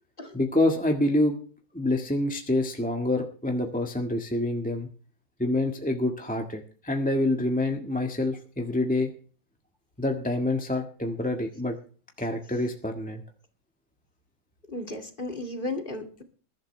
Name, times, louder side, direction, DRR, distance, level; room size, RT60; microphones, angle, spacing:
voice 1, 0.3-1.4 1.7-4.9 5.4-9.1 10.0-11.8 12.2-13.2, left 1 dB, 5° left, 2 dB, 1.4 m, -27 dB
voice 2, 14.7-16.2, left 2 dB, 30° left, 4 dB, 2.6 m, -34 dB
21.5 x 12.0 x 3.3 m, 0.42 s
omnidirectional pair, 1.9 m